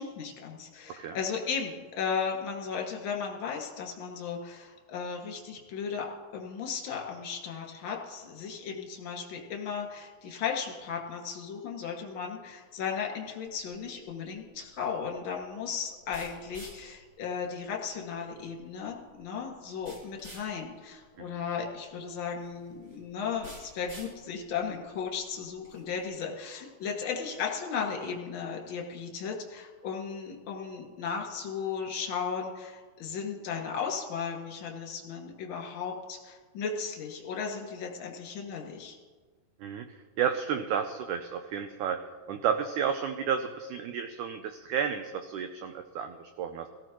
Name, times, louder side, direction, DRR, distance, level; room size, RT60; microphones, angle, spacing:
voice 1, 0.0-6.1 6.3-39.0, left 6 dB, 40° left, 0 dB, 2.2 m, -35 dB
sound 1, 13.5-26.0, right 1 dB, 30° right, 3.8 m, -53 dB
voice 2, 40.2-42.0 42.3-46.7, right 8 dB, 85° right, 7 dB, 1.7 m, -31 dB
18.0 x 15.0 x 3.0 m, 1.4 s
omnidirectional pair, 4.3 m